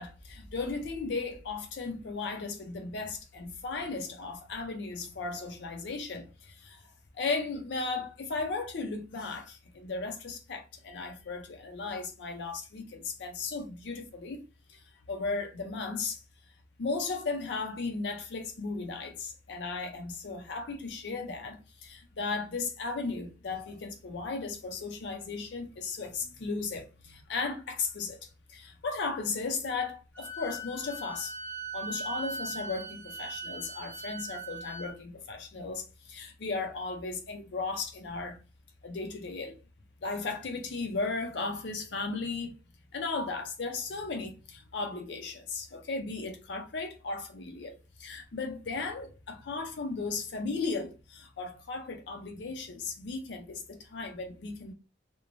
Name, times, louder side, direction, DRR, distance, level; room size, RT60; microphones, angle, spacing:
voice 1, 0.0-14.4 14.7-16.2 16.8-28.2 28.5-31.4 31.7-38.4 38.8-39.6 40.0-42.5 42.9-54.7, left 3 dB, 60° left, 0.5 m, -36 dB
Wind instrument woodwind instrument, 30.2-34.9, right 2 dB, 10° left, 0.6 m, -40 dB
3.0 x 2.1 x 2.5 m
head